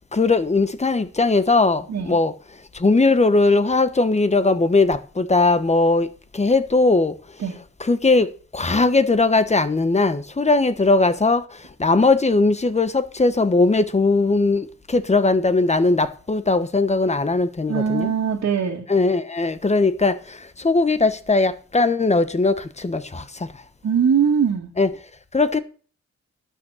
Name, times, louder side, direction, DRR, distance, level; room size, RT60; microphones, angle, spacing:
voice 1, 0.1-2.3 2.8-6.1 6.3-7.1 7.8-11.4 11.8-18.1 18.9-20.2 20.6-23.2 24.8-24.9 25.3-25.6, left 3 dB, 25° left, 1.1 m, -19 dB
voice 2, 17.7-18.8 23.8-24.7, right 7 dB, 70° right, 2.1 m, -21 dB
12.0 x 6.6 x 6.4 m
cardioid pair, 85°, 29 cm